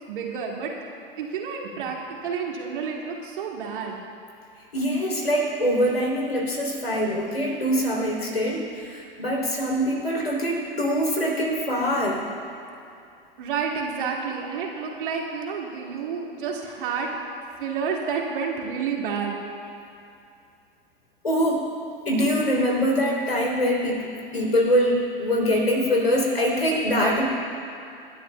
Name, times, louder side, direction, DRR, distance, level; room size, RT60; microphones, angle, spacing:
voice 1, 0.1-0.7 1.2-4.0 13.4-17.1 17.6-19.4, right 6 dB, 60° right, -1 dB, 2.2 m, -30 dB
voice 2, 4.7-12.2 21.2-21.6 22.1-27.3, equal, 85° left, -1 dB, 3.5 m, -23 dB
27.5 x 11.5 x 2.3 m, 2.6 s
figure-of-eight pair, 90°, 29 cm